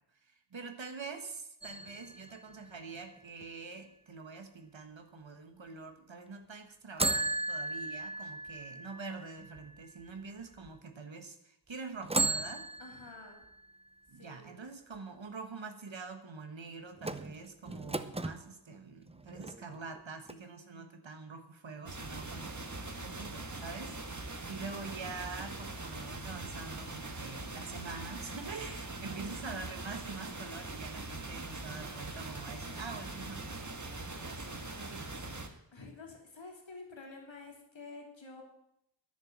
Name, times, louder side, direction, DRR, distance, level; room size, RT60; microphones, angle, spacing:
voice 1, 0.2-12.7 14.1-35.3, right 4 dB, 85° right, 6 dB, 1.5 m, -45 dB
sound 1, 1.6-3.4 7.0-10.1 10.7-10.8 12.0-13.8 17.0-18.4 19.1-20.0 20.3-20.4, right 3 dB, 15° right, 0.7 m, -36 dB
voice 2, 12.8-13.4 14.2-14.5 29.1-29.5 35.7-38.4, left 3 dB, 90° left, 1 dB, 3.0 m, -50 dB
sound 2, 21.9-35.5, right 2 dB, 40° right, 1.6 m, -42 dB
10.5 x 10.5 x 7.3 m, 0.78 s
wide cardioid pair, 65°, 44 cm